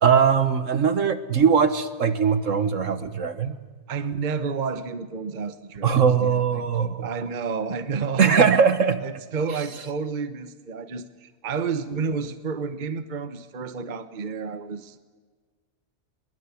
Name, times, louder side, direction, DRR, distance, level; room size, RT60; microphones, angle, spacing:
voice 1, 0.0-3.5 5.8-7.1 8.2-9.0, right 6 dB, 55° right, 11 dB, 1.5 m, -20 dB
voice 2, 3.9-8.6 9.0-15.0, right 5 dB, 35° right, 11 dB, 1.1 m, -30 dB
23.0 x 22.0 x 8.5 m, 1.4 s
omnidirectional pair, 1.6 m